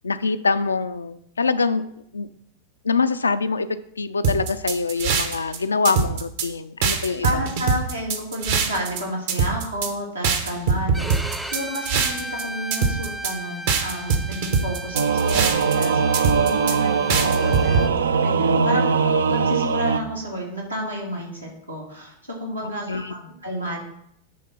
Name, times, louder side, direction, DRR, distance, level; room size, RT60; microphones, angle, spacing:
voice 1, 0.0-1.8 2.1-2.3 2.8-3.7 4.0-7.4 22.6-23.1, left 4 dB, 75° left, 12 dB, 0.4 m, -24 dB
sound 1, 4.2-5.6 5.8-6.5 6.8-9.0 9.3-9.9 10.2-12.4 12.7-13.3 13.7-15.9 16.1-16.7 17.1-17.8, right 5 dB, 55° right, 1.0 m, -22 dB
voice 2, 7.2-23.8, equal, 85° right, -3 dB, 2.2 m, -31 dB
Bowed string instrument, 10.9-17.9, right 1 dB, 5° right, 0.6 m, -35 dB
Singing / Musical instrument, 14.9-20.0, right 5 dB, 70° right, 0.4 m, -21 dB
9.3 x 3.5 x 5.6 m, 0.72 s
figure-of-eight pair, 90°, 0 cm